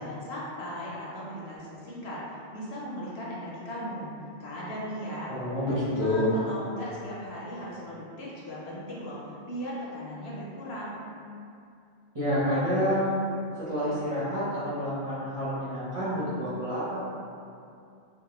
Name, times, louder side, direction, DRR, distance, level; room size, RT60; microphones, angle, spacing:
voice 1, 0.0-2.2 2.5-4.1 4.4-5.3 5.6-11.0, equal, 70° left, -7 dB, 0.8 m, -37 dB
voice 2, 5.3-6.3 12.1-13.2 13.6-17.0, equal, 35° right, -13 dB, 0.7 m, -28 dB
2.2 x 2.1 x 2.9 m, 2.5 s
omnidirectional pair, 1.2 m